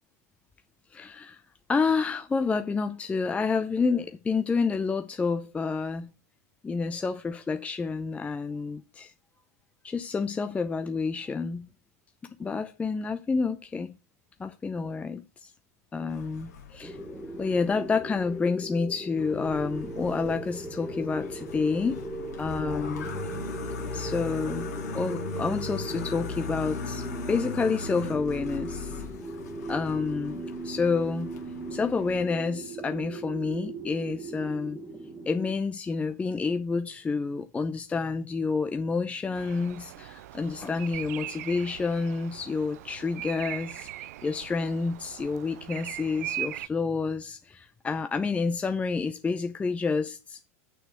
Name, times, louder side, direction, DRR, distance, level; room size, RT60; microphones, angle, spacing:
voice 1, 0.9-1.4 1.7-6.1 6.6-9.1 9.8-11.7 12.4-14.0 14.4-15.5 15.9-17.0 17.4-22.0 22.4-23.1 23.9-24.7 24.9-29.0 29.7-31.3 31.7-34.8 35.3-50.4, left 4 dB, 15° left, 0.6 m, -29 dB
sound 1, 16.1-18.4 19.2-32.2, left 4 dB, 80° left, 2.0 m, -39 dB
sound 2, 16.8-35.6, right 2 dB, 5° right, 1.4 m, -38 dB
Bird vocalization bird call bird song, 39.4-46.7, right 14 dB, 70° right, 0.4 m, -40 dB
6.8 x 6.1 x 6.3 m
hypercardioid pair, 105°, 9 cm